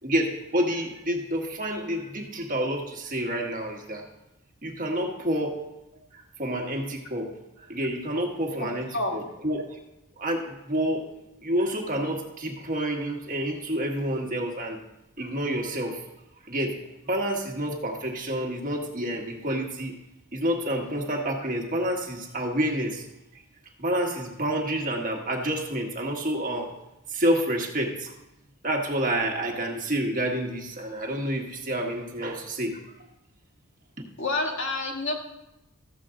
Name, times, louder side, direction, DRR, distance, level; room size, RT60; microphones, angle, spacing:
voice 1, 0.0-4.0 4.6-5.6 6.1-7.3 7.6-9.8 10.2-11.1 11.4-14.8 15.2-16.0 16.5-16.8 17.1-20.0 20.3-23.0 23.8-26.7 27.1-28.1 28.6-32.8 34.0-34.1, right 1 dB, 40° right, 2 dB, 1.5 m, -28 dB
voice 2, 8.6-9.1 34.2-35.1, left 2 dB, 60° left, 1 dB, 1.7 m, -28 dB
14.0 x 7.5 x 3.8 m, 0.92 s
head